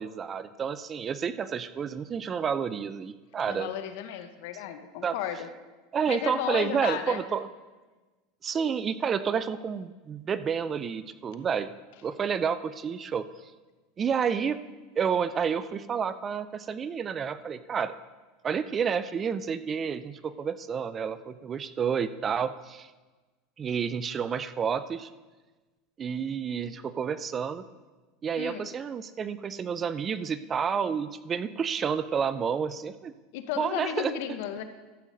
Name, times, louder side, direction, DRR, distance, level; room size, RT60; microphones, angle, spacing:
voice 1, 0.0-3.7 5.0-5.2 5.9-7.5 8.4-11.7 12.0-13.3 14.0-14.6 15.0-17.9 18.4-22.9 23.6-25.1 26.0-27.6 28.2-33.1 33.6-34.1, right 7 dB, 30° right, 15 dB, 0.5 m, -30 dB
voice 2, 3.5-5.5 6.1-7.2 28.4-28.7 33.3-34.6, left 10 dB, 70° left, 9 dB, 0.9 m, -34 dB
12.5 x 8.1 x 3.9 m, 1.2 s
supercardioid pair, 105°, 0 cm